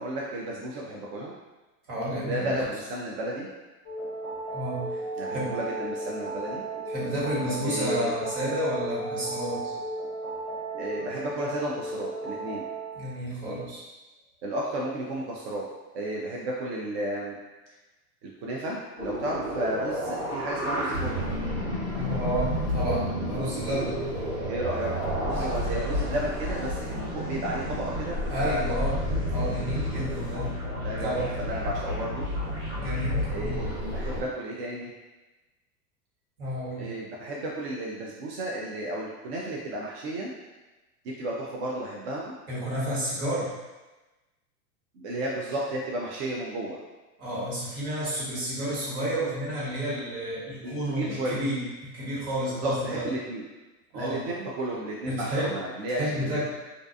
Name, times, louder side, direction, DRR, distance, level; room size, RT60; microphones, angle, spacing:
voice 1, 0.0-1.3 2.2-3.5 5.2-6.6 7.6-8.1 10.8-12.6 14.4-15.6 15.9-17.4 18.2-21.2 24.5-24.9 25.2-28.8 30.8-32.3 33.3-34.9 36.8-40.3 41.0-42.4 44.9-46.8 50.6-51.5 52.5-53.4 53.9-56.6, right 1 dB, 45° right, -3 dB, 0.4 m, -33 dB
voice 2, 1.9-2.5 4.5-5.0 5.3-5.5 6.9-9.7 12.9-13.8 21.9-24.0 25.4-25.6 28.3-30.5 31.0-31.3 32.7-33.6 36.4-36.9 42.5-43.5 47.2-53.1 53.9-54.2 55.1-55.5 56.0-56.5, equal, 65° right, -7 dB, 1.4 m, -31 dB
sound 1, 3.8-13.1, right 2 dB, 10° left, 0.6 m, -35 dB
sound 2, 19.0-34.2, left 1 dB, 90° right, 1.4 m, -31 dB
2.5 x 2.2 x 2.5 m, 1.1 s
hypercardioid pair, 110°, 47 cm